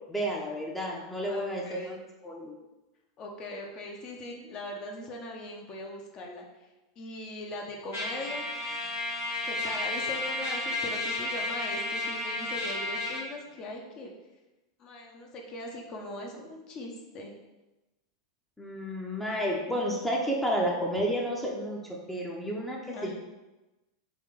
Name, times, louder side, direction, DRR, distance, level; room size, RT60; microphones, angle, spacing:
voice 1, 0.1-2.0 2.2-2.5 18.6-21.8 22.1-23.1, equal, 5° left, -2 dB, 0.7 m, -31 dB
voice 2, 1.3-2.0 3.2-6.7 7.0-8.5 9.4-14.1 14.8-17.3 22.9-23.1, left 1 dB, 40° left, 0 dB, 0.8 m, -40 dB
Trumpet, 7.9-13.3, left 2 dB, 75° left, 1.1 m, -32 dB
3.5 x 2.6 x 3.8 m, 1.1 s
hypercardioid pair, 95°, 2 cm